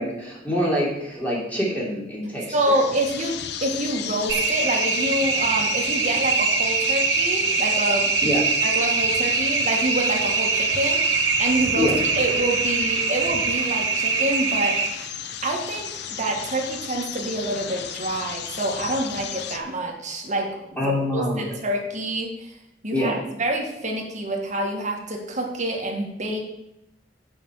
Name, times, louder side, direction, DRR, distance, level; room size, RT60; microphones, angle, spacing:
voice 1, 0.0-2.8 8.2-8.4 11.8-11.9 20.8-21.4 22.9-23.2, equal, 10° left, -5 dB, 3.1 m, -25 dB
sound 1, 2.4-19.6, left 8 dB, 65° left, 0.6 m, -34 dB
voice 2, 2.5-8.1 8.6-15.0 15.4-15.9 16.2-22.5 22.8-26.4, right 1 dB, 45° right, 1 dB, 1.9 m, -27 dB
sound 2, 4.3-14.9, right 5 dB, 75° right, 1.3 m, -23 dB
7.0 x 5.7 x 7.1 m, 0.85 s
head